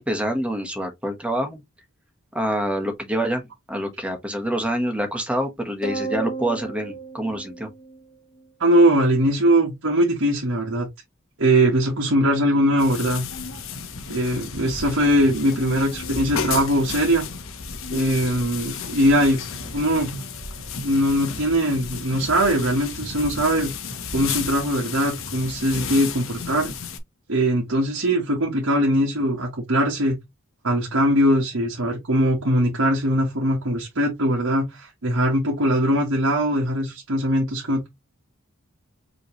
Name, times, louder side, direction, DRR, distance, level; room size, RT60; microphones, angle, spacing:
voice 1, 0.0-1.6 2.3-7.7, equal, 5° right, 1.1 m, -26 dB
sound 1, 5.8-8.4, right 4 dB, 20° left, 1.9 m, -33 dB
voice 2, 8.6-10.9 11.4-13.2 14.1-17.3 17.9-19.4 19.7-20.1 20.8-23.7 24.1-26.7 27.3-30.2 30.6-37.9, equal, 70° right, 1.4 m, -21 dB
sound 2, 12.8-27.0, left 5 dB, 70° left, 1.0 m, -33 dB
5.3 x 3.1 x 3.0 m
head